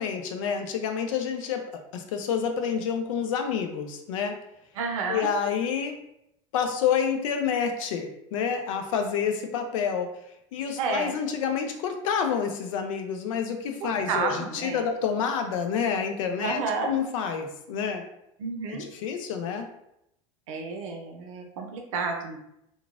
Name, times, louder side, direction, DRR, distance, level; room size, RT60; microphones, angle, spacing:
voice 1, 0.0-4.4 5.1-5.9 6.5-10.1 10.5-18.0 18.7-19.7, left 7 dB, 75° left, 5 dB, 0.5 m, -28 dB
voice 2, 4.8-5.3 10.8-11.2 13.8-14.8 16.4-16.9 18.4-18.8 20.5-22.4, right 4 dB, 80° right, 3 dB, 0.6 m, -30 dB
3.0 x 2.3 x 2.4 m, 0.79 s
hypercardioid pair, 85°, 17 cm